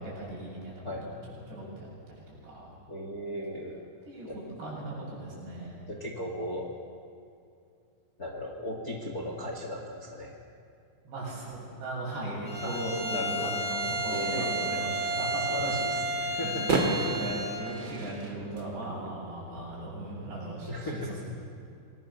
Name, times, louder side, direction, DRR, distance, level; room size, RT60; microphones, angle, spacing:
voice 1, 0.0-1.1 1.5-1.9 2.3-2.7 4.1-5.8 11.0-21.2, right 1 dB, 80° right, -5 dB, 9.8 m, -38 dB
voice 2, 0.8-1.3 2.9-3.8 4.3-4.4 5.9-6.7 8.2-10.4 12.6-12.8 13.1-13.6 14.1-17.1 20.7-21.2, equal, 35° left, 1 dB, 1.7 m, -37 dB
Bowed string instrument, 12.5-17.7, right 1 dB, 5° right, 3.1 m, -32 dB
sound 1, 14.1-20.6, right 3 dB, 35° right, 2.3 m, -36 dB
27.5 x 20.0 x 7.1 m, 2.5 s
omnidirectional pair, 4.8 m